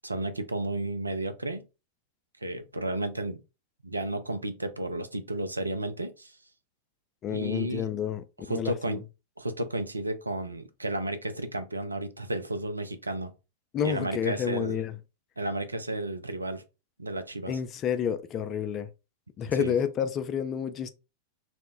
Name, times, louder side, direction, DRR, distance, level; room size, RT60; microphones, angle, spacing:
voice 1, 0.0-1.7 2.4-3.4 3.8-6.3 7.3-7.9 8.5-9.1 9.4-13.3 13.8-14.8 15.4-16.6 17.0-17.6 19.4-19.7, right 1 dB, 80° right, 0.4 m, -32 dB
voice 2, 7.2-9.0 13.7-15.0 17.5-18.9 19.4-20.9, left 8 dB, 30° left, 0.3 m, -30 dB
2.1 x 2.0 x 3.6 m
figure-of-eight pair, 90°, 0 cm